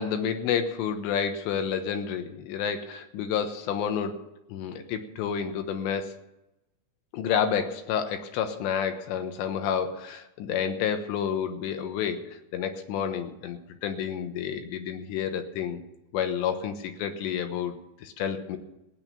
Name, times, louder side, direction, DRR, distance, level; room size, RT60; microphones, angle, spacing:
voice 1, 0.0-4.2 4.5-6.1 7.1-15.8 16.1-18.6, left 8 dB, 80° left, 7 dB, 3.4 m, -30 dB
16.5 x 9.2 x 7.0 m, 0.92 s
omnidirectional pair, 5.1 m